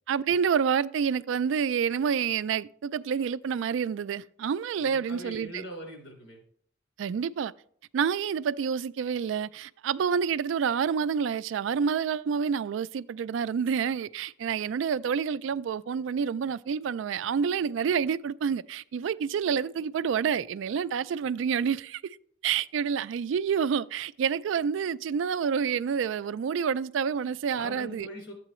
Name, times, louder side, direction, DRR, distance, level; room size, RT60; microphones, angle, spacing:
voice 1, 0.1-5.6 7.0-7.5 7.9-22.2 22.4-28.1, right 7 dB, 70° right, 0.3 m, -28 dB
voice 2, 4.7-6.4 27.5-28.3, equal, 70° left, 3.5 m, -42 dB
12.5 x 8.3 x 3.0 m
head